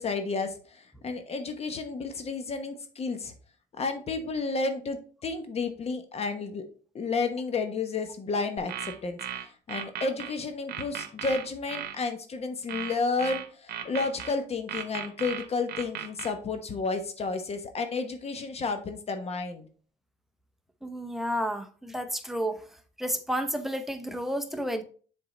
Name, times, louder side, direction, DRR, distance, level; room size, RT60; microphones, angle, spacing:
voice 1, 0.0-3.3 3.8-6.6 6.9-19.7, left 4 dB, 35° left, 7 dB, 1.1 m, -31 dB
sound 1, 8.6-10.3 10.7-12.0 12.7-14.3 14.7-16.3, right 9 dB, 70° right, 1.0 m, -36 dB
voice 2, 20.8-22.6 23.0-24.8, equal, ahead, 7 dB, 0.8 m, -31 dB
7.1 x 3.9 x 3.9 m, 0.41 s
cardioid pair, 110°, 17 cm